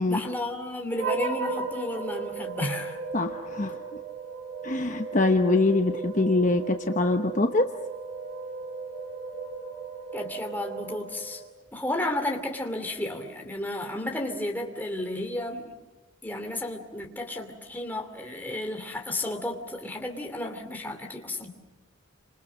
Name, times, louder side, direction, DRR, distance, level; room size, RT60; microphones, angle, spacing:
voice 1, 0.1-3.0 10.1-11.4 11.7-15.7 16.2-21.5, left 1 dB, 10° left, 3 dB, 2.7 m, -32 dB
sound 1, 1.0-11.5, right 4 dB, 45° right, 4.1 m, -36 dB
voice 2, 3.1-4.0 4.6-7.7, left 2 dB, 35° left, 5 dB, 1.0 m, -24 dB
30.0 x 27.0 x 6.5 m, 1.2 s
head